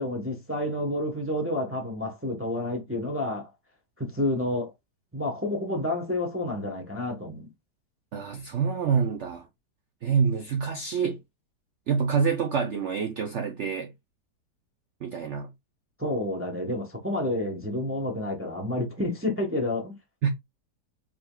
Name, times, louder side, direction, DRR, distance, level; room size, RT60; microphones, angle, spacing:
voice 1, 0.0-3.5 4.0-4.7 5.1-7.5 16.0-20.0, left 1 dB, 10° right, 0.6 m, -29 dB
voice 2, 8.1-9.5 10.0-11.2 11.9-13.9 15.0-15.5 20.2-20.3, right 6 dB, 75° right, 0.6 m, -26 dB
4.9 x 3.4 x 2.2 m
omnidirectional pair, 1.9 m